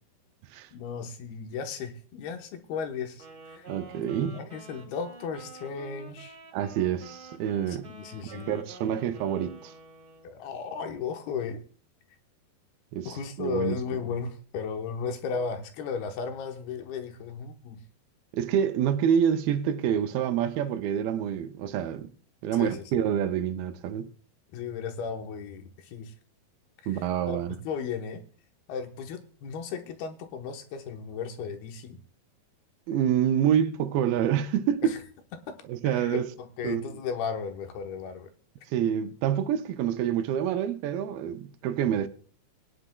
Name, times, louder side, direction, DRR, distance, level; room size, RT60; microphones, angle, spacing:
voice 1, 0.7-3.7 3.9-6.4 7.7-8.6 10.2-11.6 13.0-17.8 22.5-22.8 24.5-26.1 26.8-26.9 27.3-28.2 28.7-32.0 34.8-35.0 35.3-35.5 35.8-38.3, left 6 dB, 75° left, 2.9 m, -35 dB
Wind instrument woodwind instrument, 3.1-10.4, right 3 dB, 25° right, 2.2 m, -49 dB
voice 2, 3.7-4.3 6.5-7.9 8.3-9.7 12.9-13.8 18.3-22.1 22.4-24.1 26.9-27.6 32.9-35.0 35.7-36.3 36.6-36.8 38.7-42.1, right 9 dB, 80° right, 2.4 m, -27 dB
21.0 x 9.9 x 2.2 m
omnidirectional pair, 4.5 m